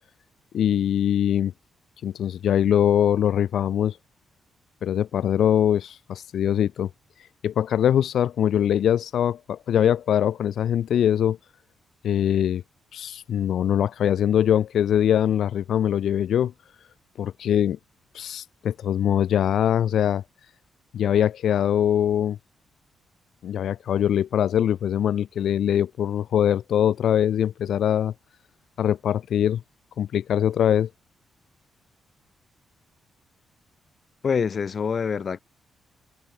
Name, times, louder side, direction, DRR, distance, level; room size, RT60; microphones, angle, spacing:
voice 1, 0.5-1.5 2.0-4.0 4.8-6.9 7.2-11.4 12.0-12.6 12.9-16.5 17.2-17.8 18.1-20.2 20.9-22.4 23.4-28.1 28.8-29.6 30.0-30.9, left 10 dB, 75° left, 0.7 m, -22 dB
voice 2, 34.2-35.4, left 6 dB, 50° left, 1.8 m, -25 dB
cardioid pair, 80°, 0 cm